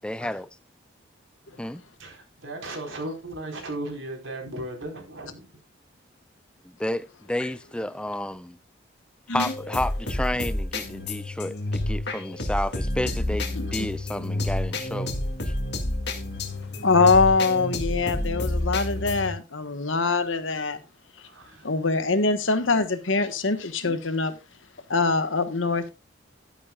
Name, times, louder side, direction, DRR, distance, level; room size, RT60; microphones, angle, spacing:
voice 1, 0.0-0.5 1.6-1.8 6.6-8.6 9.3-15.1 15.4-15.5, left 1 dB, 5° left, 0.4 m, -31 dB
voice 2, 1.5-5.5 21.2-21.6 22.7-22.8, right 1 dB, 80° right, 4.3 m, -36 dB
sound 1, 9.3-19.3, left 1 dB, 55° left, 2.0 m, -29 dB
voice 3, 13.5-13.9 16.8-20.8 21.6-24.3 24.9-25.9, left 4 dB, 80° left, 1.3 m, -23 dB
12.0 x 10.5 x 2.4 m
head